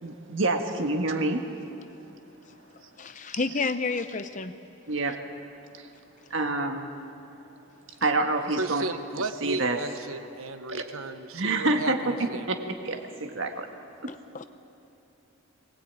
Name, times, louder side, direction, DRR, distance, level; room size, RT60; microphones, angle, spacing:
voice 1, 0.0-1.4 3.3-3.5 4.9-5.2 5.8-5.9 6.3-6.9 8.0-8.9 9.4-9.8 10.7-10.8 11.3-13.7 14.0-14.1, right 2 dB, 60° right, 5 dB, 1.7 m, -27 dB
voice 2, 3.0-4.5 14.3-14.4, left 4 dB, 35° left, 10 dB, 0.6 m, -29 dB
voice 3, 8.6-12.5, right 3 dB, 80° right, 10 dB, 1.1 m, -34 dB
22.0 x 19.0 x 8.8 m, 2.9 s
head